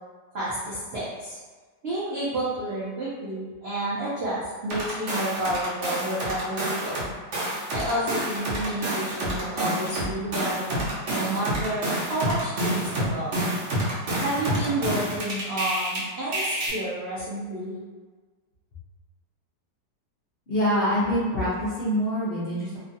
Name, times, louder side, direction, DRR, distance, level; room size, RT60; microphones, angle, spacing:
voice 1, 0.3-1.4 1.8-7.0 7.7-13.4 14.2-17.8, right 1 dB, 75° right, -9 dB, 0.5 m, -30 dB
sound 1, 4.7-7.0 7.3-16.0 16.3-16.7, right 1 dB, 55° right, 0.9 m, -28 dB
voice 2, 20.5-22.8, equal, 65° left, -12 dB, 0.6 m, -25 dB
3.0 x 2.5 x 2.6 m, 1.4 s
omnidirectional pair, 1.9 m